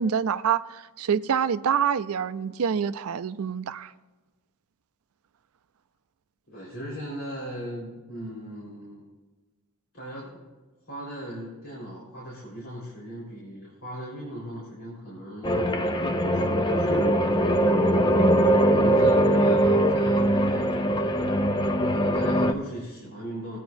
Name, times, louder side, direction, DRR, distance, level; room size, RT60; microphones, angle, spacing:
voice 1, 0.0-3.9, right 7 dB, 75° right, 0.4 m, -26 dB
voice 2, 6.5-9.1 9.9-10.4 10.9-17.2 18.7-21.4 21.9-23.6, equal, 60° left, 4.0 m, -37 dB
sound 1, 15.4-22.5, right 1 dB, 20° left, 0.5 m, -21 dB
20.0 x 9.2 x 2.6 m
head